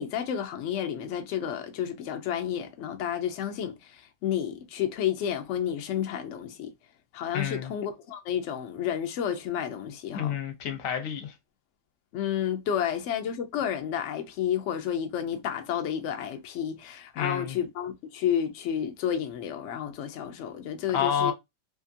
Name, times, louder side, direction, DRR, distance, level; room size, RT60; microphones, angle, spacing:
voice 1, 0.0-6.7 7.1-10.4 12.1-21.3, left 9 dB, 80° left, 0.6 m, -31 dB
voice 2, 7.3-7.7 10.1-11.3 17.2-17.6 20.9-21.3, left 8 dB, 60° left, 1.0 m, -29 dB
2.8 x 2.5 x 2.5 m
omnidirectional pair, 1.8 m